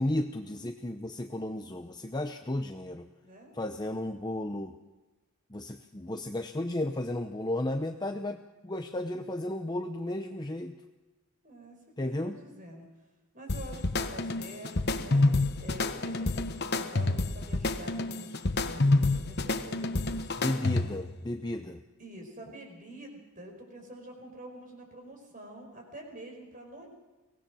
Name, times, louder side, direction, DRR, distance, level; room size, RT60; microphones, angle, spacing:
voice 1, 0.0-3.1 3.5-4.7 5.5-10.7 12.0-12.4 20.4-21.8, left 1 dB, 20° left, 6 dB, 0.7 m, -33 dB
voice 2, 3.2-3.5 11.4-12.9 13.3-15.3 15.6-20.5 22.0-26.9, right 1 dB, 35° right, 3 dB, 4.9 m, -47 dB
sound 1, 13.5-21.1, left 2 dB, 45° left, 1.1 m, -28 dB
23.5 x 18.0 x 6.2 m, 1.1 s
head